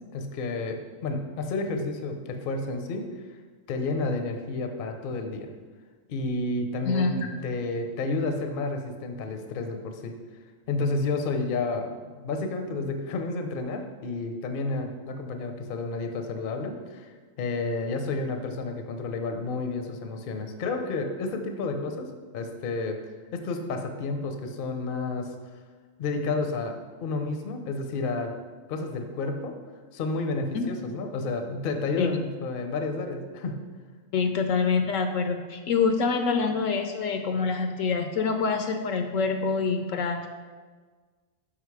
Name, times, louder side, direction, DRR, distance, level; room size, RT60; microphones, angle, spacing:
voice 1, 0.1-3.0 3.7-5.5 6.1-10.1 10.7-23.0 23.3-25.3 26.0-26.7 27.0-28.3 28.7-29.5 29.9-33.6, left 3 dB, 50° left, 5 dB, 0.7 m, -31 dB
voice 2, 6.8-7.3 30.5-30.7 32.0-32.2 34.1-40.3, left 5 dB, 75° left, 6 dB, 1.0 m, -26 dB
6.0 x 5.8 x 4.7 m, 1.4 s
omnidirectional pair, 1.4 m